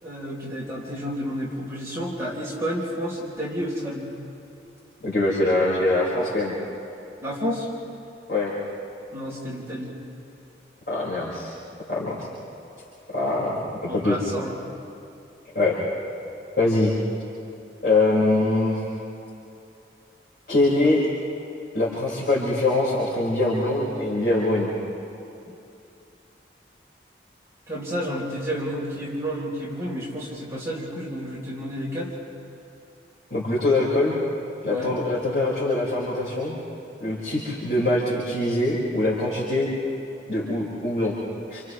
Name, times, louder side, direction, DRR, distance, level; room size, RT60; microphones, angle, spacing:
voice 1, 0.0-4.1 7.2-7.7 9.1-9.9 13.9-14.5 27.7-32.1 34.7-35.0, equal, 15° right, -6 dB, 4.0 m, -30 dB
voice 2, 5.0-6.5 8.3-8.5 10.9-11.5 11.9-12.3 13.1-14.2 15.5-15.8 16.6-16.9 17.8-18.8 20.5-21.0 21.7-24.7 33.3-34.2 34.6-36.6 37.0-39.7 40.3-41.1 41.5-41.6, left 2 dB, 55° left, -8 dB, 5.1 m, -23 dB
30.0 x 29.5 x 3.2 m, 2.7 s
head